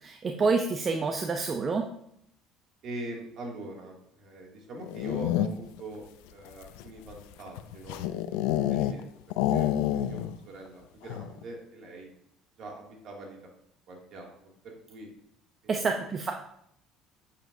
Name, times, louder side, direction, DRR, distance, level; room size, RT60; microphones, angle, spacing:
voice 1, 0.0-1.9 15.7-16.3, right 4 dB, 35° right, 4 dB, 0.7 m, -28 dB
voice 2, 2.8-6.0 6.3-8.0 8.7-9.1 9.5-12.1 12.6-13.5 13.9-15.1 15.6-16.1, right 1 dB, 60° right, 0 dB, 2.4 m, -43 dB
sound 1, 4.8-5.8 6.5-9.0 9.3-10.4 10.7-10.8 11.0-11.4, left 12 dB, 80° left, 0.4 m, -28 dB
9.0 x 6.9 x 2.7 m, 0.73 s
supercardioid pair, 85°, 0 cm